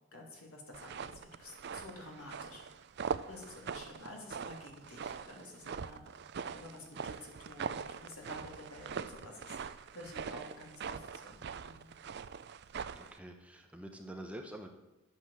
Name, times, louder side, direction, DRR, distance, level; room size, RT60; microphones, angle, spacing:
voice 1, 0.1-2.8 3.3-6.0 6.4-11.9, left 1 dB, 75° left, 0 dB, 3.2 m, -50 dB
sound 1, 0.7-13.2, right 6 dB, 50° right, 0.4 m, -42 dB
voice 2, 12.9-14.7, right 1 dB, 5° right, 3 dB, 0.8 m, -46 dB
10.5 x 8.5 x 7.4 m, 1.0 s
head